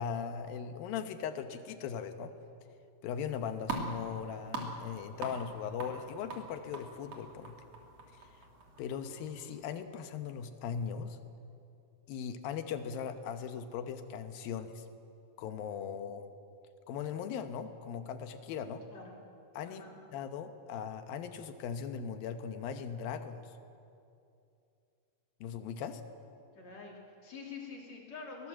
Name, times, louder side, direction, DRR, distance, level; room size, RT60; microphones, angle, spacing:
voice 1, 0.0-2.3 3.0-7.6 8.8-11.2 12.1-14.8 15.4-16.3 16.9-18.8 19.5-19.8 20.1-23.5 25.4-26.0, left 7 dB, 85° left, 8 dB, 2.9 m, -39 dB
sound 1, 3.1-9.8, right 3 dB, 50° right, 3.5 m, -44 dB
voice 2, 26.5-28.5, left 4 dB, 50° left, -2 dB, 4.4 m, -46 dB
22.0 x 18.5 x 7.5 m, 2.6 s
omnidirectional pair, 4.1 m